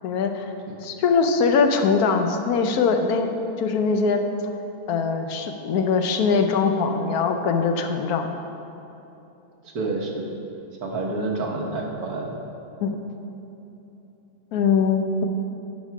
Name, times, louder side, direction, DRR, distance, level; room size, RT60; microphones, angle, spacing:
voice 1, 0.0-0.5 0.8-4.2 4.9-8.3 12.8-13.0 14.5-15.3, left 5 dB, 80° left, 5 dB, 1.2 m, -22 dB
voice 2, 9.6-10.2 10.8-12.4, right 3 dB, 80° right, 0 dB, 1.6 m, -28 dB
10.0 x 4.2 x 5.9 m, 3.0 s
omnidirectional pair, 1.6 m